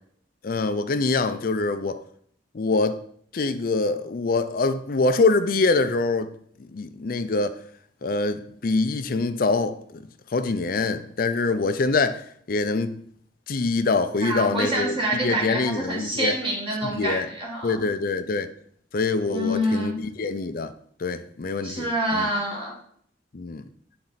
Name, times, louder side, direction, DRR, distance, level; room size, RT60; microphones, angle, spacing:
voice 1, 0.4-2.0 2.5-3.0 3.3-6.3 6.7-7.5 8.0-10.0 10.3-12.2 12.5-13.0 13.5-14.9 15.2-16.3 16.8-17.3 17.6-18.5 18.9-20.7 21.0-21.9 22.1-22.3 23.3-23.6, left 3 dB, 50° left, 0.5 m, -24 dB
voice 2, 14.2-17.8 19.3-20.0 21.6-22.7, right 1 dB, 30° right, 1.7 m, -26 dB
8.8 x 4.3 x 4.0 m
head